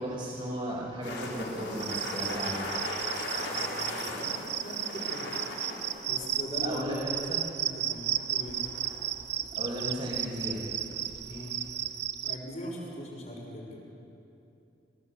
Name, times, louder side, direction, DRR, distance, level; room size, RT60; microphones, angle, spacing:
voice 1, 0.0-2.7 6.6-7.5 9.6-10.6, equal, 35° right, -9 dB, 5.7 m, -35 dB
sound 1, 1.0-12.0, left 2 dB, 75° left, 4.5 m, -40 dB
Cricket, 1.7-12.4, right 12 dB, 60° right, 0.7 m, -34 dB
voice 2, 3.5-5.3 6.0-6.8 7.6-8.6 11.2-11.6 12.2-13.8, equal, 40° left, -2 dB, 5.5 m, -41 dB
28.0 x 17.5 x 8.2 m, 2.7 s
head